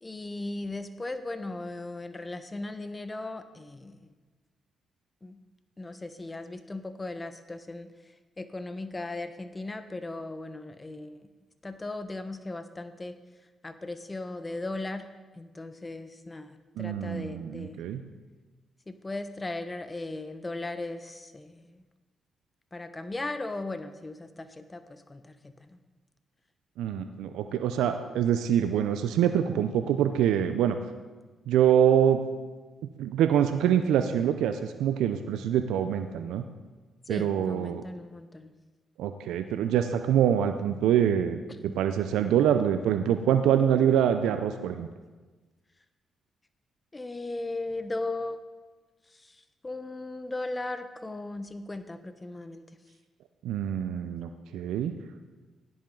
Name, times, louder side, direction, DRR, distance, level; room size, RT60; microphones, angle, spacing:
voice 1, 0.0-4.1 5.2-5.4 5.8-11.3 11.6-13.2 13.6-15.1 15.3-17.8 18.9-21.8 22.7-25.8 37.0-38.5 41.5-41.8 46.9-48.4 49.1-52.6, left 2 dB, 25° left, 10 dB, 1.2 m, -37 dB
voice 2, 16.8-18.0 26.8-30.8 31.5-32.2 33.0-36.4 37.1-37.8 39.0-41.4 41.8-44.9 53.4-54.9, right 9 dB, 80° right, 8 dB, 0.6 m, -25 dB
16.0 x 10.5 x 3.9 m, 1.3 s
supercardioid pair, 50°, 0 cm